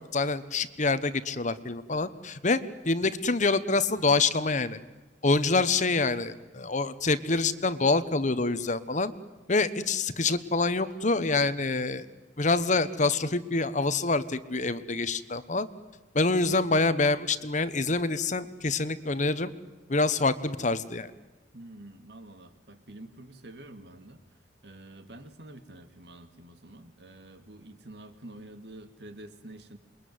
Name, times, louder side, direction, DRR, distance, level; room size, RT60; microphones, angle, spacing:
voice 1, 0.0-4.8 5.2-9.1 9.5-12.0 12.4-15.7 16.1-19.5 19.9-21.1, left 3 dB, 45° left, 13 dB, 1.2 m, -26 dB
voice 2, 21.5-24.2 24.6-29.8, right 1 dB, 65° right, 8 dB, 2.4 m, -47 dB
28.0 x 22.5 x 9.6 m, 1.2 s
head